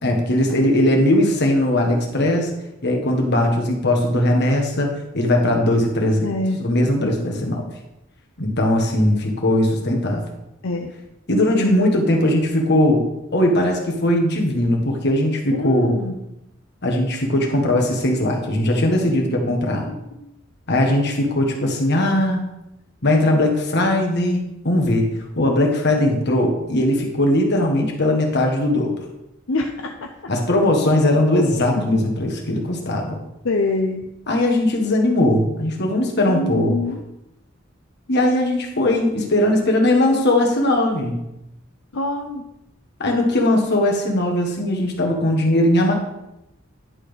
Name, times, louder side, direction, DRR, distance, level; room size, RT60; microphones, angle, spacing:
voice 1, 0.0-2.5 2.8-4.9 5.1-6.3 6.6-7.6 8.4-10.2 11.3-13.0 13.3-15.9 16.8-19.9 20.7-22.4 23.0-25.0 25.4-28.9 30.3-33.2 34.3-36.7 38.1-41.2 43.0-45.9, left 1 dB, 60° left, 1 dB, 1.7 m, -19 dB
voice 2, 6.2-6.6 7.3-7.7 9.0-9.1 10.6-10.9 11.5-11.8 15.5-16.2 19.9-20.3 29.5-30.1 31.8-32.0 33.4-34.1 36.3-37.0 41.9-42.5, left 2 dB, 80° left, 2 dB, 0.7 m, -25 dB
11.0 x 4.3 x 5.2 m, 0.89 s
head